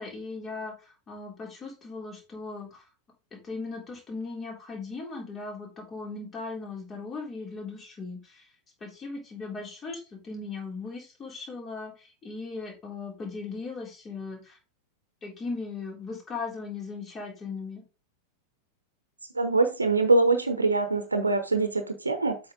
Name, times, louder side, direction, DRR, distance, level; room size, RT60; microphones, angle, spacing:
voice 1, 0.0-2.8 3.3-8.4 8.8-14.6 15.2-17.8, left 4 dB, 25° left, 0 dB, 3.3 m, -38 dB
voice 2, 19.3-22.4, right 3 dB, 80° right, 9 dB, 0.9 m, -24 dB
7.8 x 5.9 x 3.7 m, 0.30 s
figure-of-eight pair, 90°, 0 cm